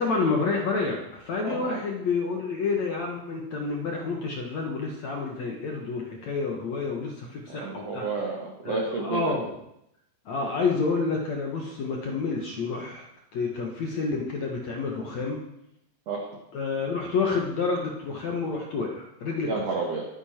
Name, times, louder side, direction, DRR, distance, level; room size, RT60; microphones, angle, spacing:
voice 1, 0.0-8.0 8.7-9.6 10.3-13.0 13.3-15.4 16.5-19.7, left 4 dB, 65° left, 0 dB, 1.8 m, -29 dB
voice 2, 1.4-1.8 7.5-9.4 16.1-16.4 19.5-20.1, right 4 dB, 50° right, 0 dB, 2.0 m, -30 dB
24.5 x 10.0 x 4.5 m, 0.78 s
omnidirectional pair, 5.3 m